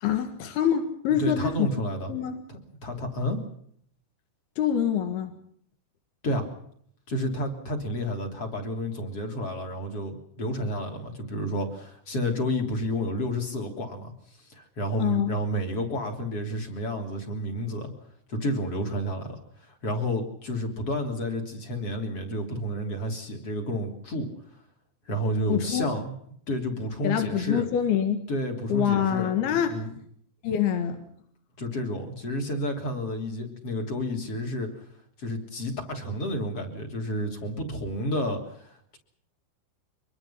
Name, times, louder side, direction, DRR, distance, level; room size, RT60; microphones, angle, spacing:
voice 1, 0.0-1.7 2.1-2.4 4.6-5.3 15.0-15.4 25.5-25.9 27.0-28.2 28.7-29.8 30.4-31.0, left 9 dB, 65° left, 7 dB, 3.3 m, -25 dB
voice 2, 1.2-2.1 2.5-3.4 6.2-6.5 7.1-14.1 14.5-17.9 18.3-19.4 19.7-24.3 25.1-26.2 26.5-27.7 28.3-29.9 31.6-34.7 35.2-39.0, equal, 35° left, 3 dB, 3.6 m, -30 dB
24.5 x 22.0 x 5.7 m, 0.66 s
omnidirectional pair, 5.4 m